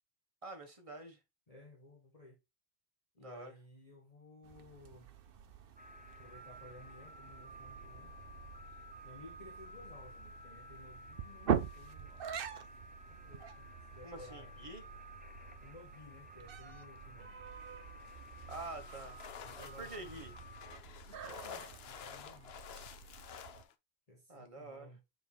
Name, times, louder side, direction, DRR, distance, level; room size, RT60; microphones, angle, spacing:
voice 1, 0.4-1.2 3.2-3.5 8.7-8.8 14.0-14.8 18.5-19.2 19.6-20.3 24.3-24.9, right 2 dB, 30° right, 1.4 m, -47 dB
voice 2, 1.5-2.4 3.1-5.1 6.2-8.1 9.0-12.3 13.1-14.5 15.6-17.4 19.2-20.3 21.1-22.6 24.1-25.0, left 2 dB, 35° left, 1.5 m, -57 dB
sound 1, 4.4-23.6, right 7 dB, 60° right, 0.9 m, -44 dB
sound 2, 5.8-20.8, equal, 10° right, 0.6 m, -54 dB
sound 3, 18.0-23.7, left 8 dB, 75° left, 0.9 m, -51 dB
7.0 x 4.1 x 3.4 m
omnidirectional pair, 1.1 m